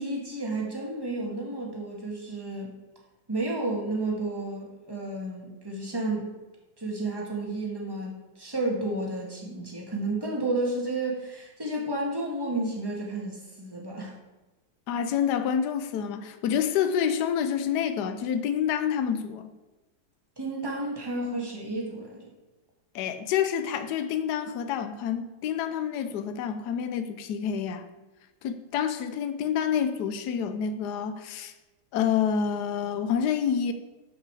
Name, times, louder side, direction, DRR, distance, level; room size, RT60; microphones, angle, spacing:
voice 1, 0.0-2.7 3.3-6.4 6.8-14.1 20.4-22.3, right 2 dB, 10° right, -2 dB, 1.8 m, -31 dB
voice 2, 14.9-19.5 22.9-27.9 28.4-31.5 31.9-33.7, left 8 dB, 65° left, 9 dB, 1.1 m, -28 dB
12.5 x 5.6 x 4.8 m, 1.1 s
omnidirectional pair, 2.4 m